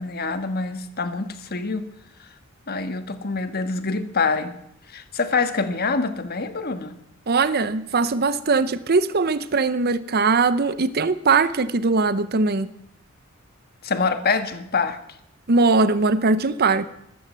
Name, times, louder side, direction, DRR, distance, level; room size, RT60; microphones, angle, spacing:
voice 1, 0.0-1.9 2.7-4.6 4.9-7.0 13.8-15.0, left 4 dB, 45° left, 9 dB, 1.4 m, -25 dB
voice 2, 7.3-12.7 15.5-16.9, right 4 dB, 50° right, 14 dB, 0.8 m, -20 dB
13.5 x 13.0 x 7.5 m, 0.75 s
head